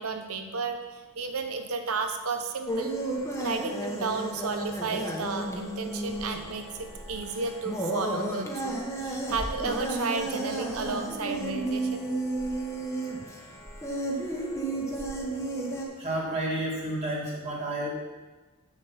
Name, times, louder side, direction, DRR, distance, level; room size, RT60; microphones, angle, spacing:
voice 1, 0.0-3.0 3.4-12.0, right 4 dB, 75° right, 6 dB, 0.9 m, -33 dB
sound 1, 2.7-15.8, right 2 dB, 15° left, 1.0 m, -33 dB
voice 2, 16.0-17.9, right 1 dB, 30° right, -4 dB, 2.0 m, -30 dB
7.7 x 6.6 x 5.8 m, 1.3 s
head